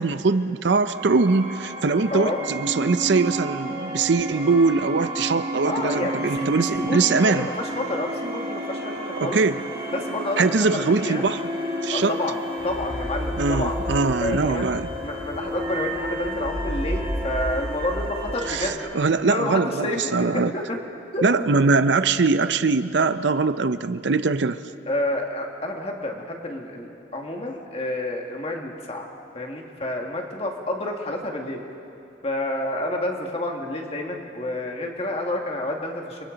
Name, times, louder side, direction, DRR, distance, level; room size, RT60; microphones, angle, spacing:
voice 1, 0.0-7.5 9.2-9.6 10.4-11.4 11.8-12.1 13.4-14.9 18.5-20.5 21.2-24.6, right 4 dB, 65° right, 12 dB, 0.6 m, -22 dB
sound 1, 0.9-18.8, equal, 30° right, 4.4 m, -31 dB
voice 2, 5.7-9.4 9.9-11.2 11.9-14.7 15.0-18.9 19.3-20.8 21.1-21.3 24.9-29.1 29.3-31.6 32.2-36.2, left 1 dB, 30° left, 1 dB, 2.0 m, -29 dB
30.0 x 24.5 x 4.0 m, 2.7 s
head